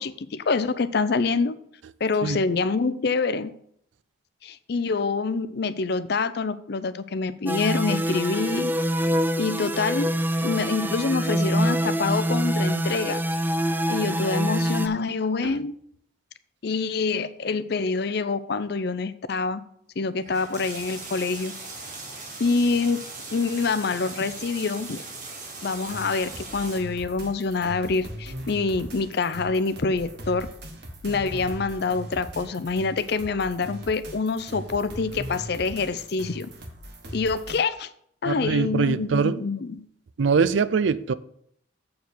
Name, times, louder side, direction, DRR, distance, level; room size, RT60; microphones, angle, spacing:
voice 1, 0.0-1.6 2.0-3.5 4.4-8.7 9.4-10.1 10.4-13.2 13.9-15.7 16.6-19.6 20.0-21.5 22.4-23.0 23.3-25.0 25.6-30.5 31.0-36.5 37.1-37.9 38.2-39.9, left 4 dB, 55° left, 0.5 m, -26 dB
sound 1, 7.5-14.9, equal, 10° right, 0.3 m, -25 dB
sound 2, 20.2-26.8, right 3 dB, 40° right, 1.8 m, -39 dB
sound 3, 25.9-37.6, equal, 60° right, 1.4 m, -40 dB
voice 2, 38.3-39.4 40.2-41.1, right 5 dB, 75° right, 0.4 m, -23 dB
7.6 x 4.7 x 6.9 m
head